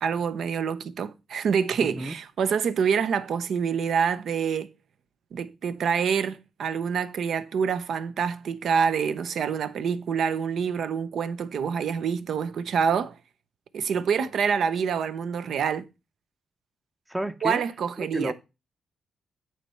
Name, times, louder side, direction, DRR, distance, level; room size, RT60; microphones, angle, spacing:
voice 1, 0.0-4.7 5.3-13.2 13.7-15.9 17.4-18.3, right 6 dB, 70° right, 0.6 m, -26 dB
voice 2, 17.1-17.6 18.0-18.3, right 1 dB, 10° right, 0.6 m, -30 dB
8.5 x 3.2 x 5.6 m
cardioid pair, 85°, 0 cm